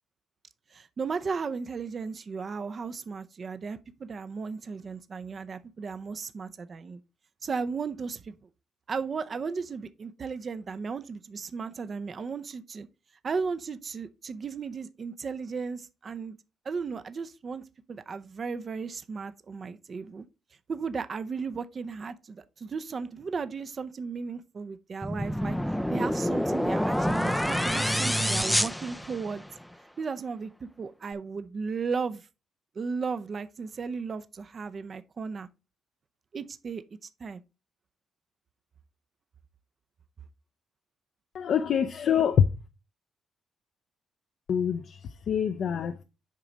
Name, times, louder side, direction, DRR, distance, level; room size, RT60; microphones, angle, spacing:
voice 1, 0.7-7.0 7.4-8.5 8.9-12.9 13.2-16.4 16.6-20.2 20.7-25.6 25.9-29.4 30.0-32.3 32.8-35.5 36.3-36.8 37.2-37.4, right 5 dB, 45° right, 0.6 m, -35 dB
sound 1, 25.0-29.6, equal, 5° left, 0.4 m, -27 dB
voice 2, 41.3-42.4 44.5-45.0 45.3-46.0, left 8 dB, 60° left, 0.6 m, -25 dB
7.4 x 4.9 x 4.0 m
cardioid pair, 90°, 0 cm